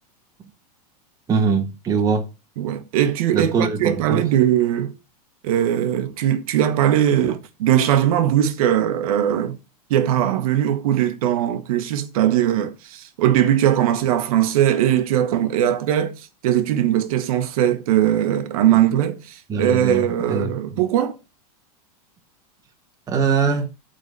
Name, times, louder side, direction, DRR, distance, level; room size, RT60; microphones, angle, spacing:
voice 1, 1.3-2.3 3.3-4.2 19.5-20.5 23.1-23.7, right 5 dB, 15° right, 1.2 m, -22 dB
voice 2, 2.6-4.9 5.4-9.6 9.9-21.2, right 11 dB, 60° right, 1.2 m, -20 dB
8.3 x 3.9 x 6.6 m
supercardioid pair, 155°, 20 cm